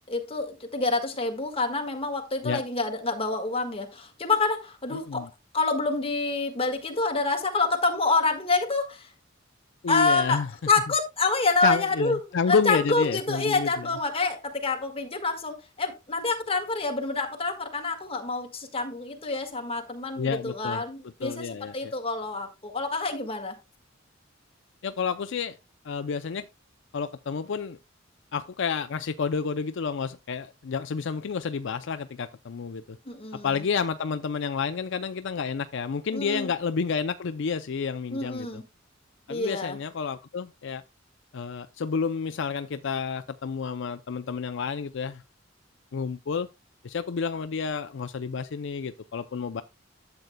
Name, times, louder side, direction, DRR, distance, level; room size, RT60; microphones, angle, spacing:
voice 1, 0.1-5.2 5.5-9.1 9.9-12.2 12.5-21.5 21.7-23.6 33.1-33.6 36.1-36.5 38.1-38.6 39.3-39.8, left 3 dB, 30° left, 1.7 m, -27 dB
voice 2, 4.9-5.3 9.8-10.5 11.6-13.9 20.2-20.8 21.2-21.9 24.8-25.6 25.8-26.4 26.9-27.8 28.3-33.0 33.4-38.6 39.3-40.8 41.3-45.2 45.9-46.5 46.8-49.6, left 5 dB, 65° left, 0.5 m, -30 dB
12.0 x 7.8 x 2.2 m
head